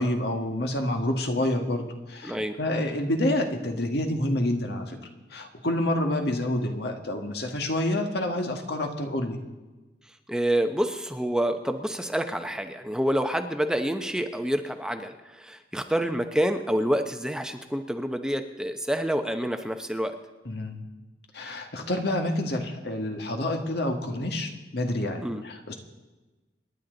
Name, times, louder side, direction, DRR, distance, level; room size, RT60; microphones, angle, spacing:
voice 1, 0.0-5.0 5.3-9.4 20.5-20.8 21.3-25.7, left 1 dB, 70° left, 3 dB, 1.9 m, -28 dB
voice 2, 2.2-2.6 10.3-20.1 25.2-25.4, equal, 5° right, 6 dB, 0.8 m, -27 dB
27.5 x 10.5 x 4.0 m, 1.2 s
head